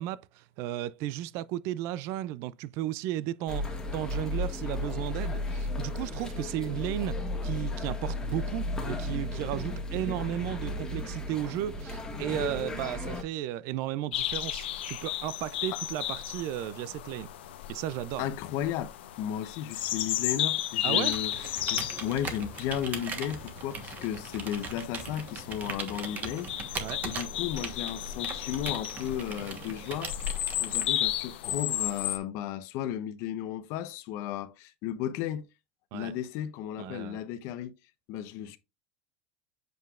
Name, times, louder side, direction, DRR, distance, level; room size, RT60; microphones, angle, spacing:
voice 1, 0.0-17.3 17.7-18.3 20.8-21.2 26.8-27.0 35.9-36.1 36.8-37.2, right 13 dB, 50° right, 0.4 m, -34 dB
sound 1, 3.5-13.2, left 2 dB, 10° left, 1.5 m, -34 dB
sound 2, 14.1-32.2, left 12 dB, 90° left, 0.9 m, -34 dB
voice 2, 18.2-26.8 27.0-30.1 30.6-35.5 35.9-37.7 38.1-38.6, left 10 dB, 55° left, 0.8 m, -34 dB
Computer keyboard, 20.9-31.2, right 5 dB, 30° right, 1.2 m, -40 dB
7.8 x 5.2 x 2.4 m
supercardioid pair, 135°, 6 cm